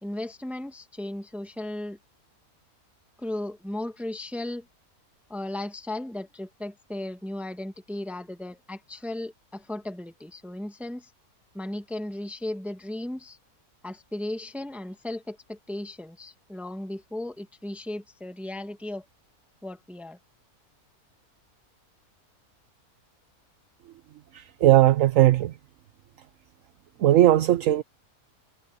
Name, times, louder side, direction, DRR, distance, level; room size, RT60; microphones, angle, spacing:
voice 1, 0.0-2.0 3.2-4.6 5.3-11.1 11.5-13.4 13.8-19.0 19.6-20.2, left 1 dB, ahead, 1.5 m, -36 dB
voice 2, 24.3-25.5 27.0-27.8, right 13 dB, 65° right, 1.0 m, -18 dB
omnidirectional pair, 1.6 m